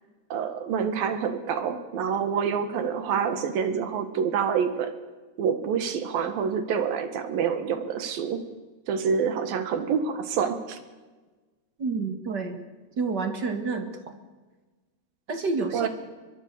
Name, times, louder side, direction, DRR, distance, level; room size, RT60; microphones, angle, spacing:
voice 1, 0.3-4.9 5.4-8.4 8.9-10.8 15.7-15.9, right 7 dB, 65° right, 10 dB, 3.3 m, -27 dB
voice 2, 11.8-12.6 13.0-13.9 15.3-15.9, right 4 dB, 40° right, 7 dB, 1.6 m, -29 dB
22.5 x 22.5 x 6.9 m, 1.3 s
omnidirectional pair, 4.8 m